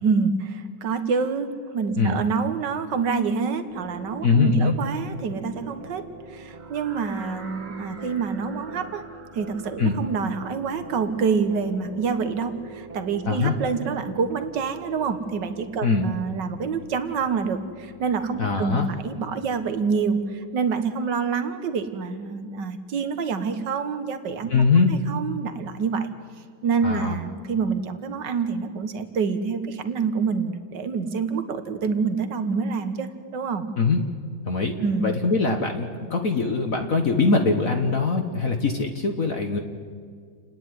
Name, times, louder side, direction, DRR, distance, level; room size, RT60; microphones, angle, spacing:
voice 1, 0.0-9.0 9.3-24.5 24.9-26.1 26.6-33.7 34.8-35.1, right 5 dB, 65° right, 9 dB, 1.9 m, -27 dB
sound 1, 3.7-20.4, right 4 dB, 20° right, 1.3 m, -44 dB
voice 2, 4.2-4.7 9.8-10.0 13.3-13.5 15.8-16.1 18.4-18.9 24.5-24.9 26.8-27.1 33.8-34.0 34.4-39.6, left 4 dB, 50° left, 3 dB, 1.6 m, -22 dB
sound 2, 6.6-12.5, right 3 dB, 40° right, 2.6 m, -47 dB
29.0 x 10.0 x 9.8 m, 2.1 s
omnidirectional pair, 2.1 m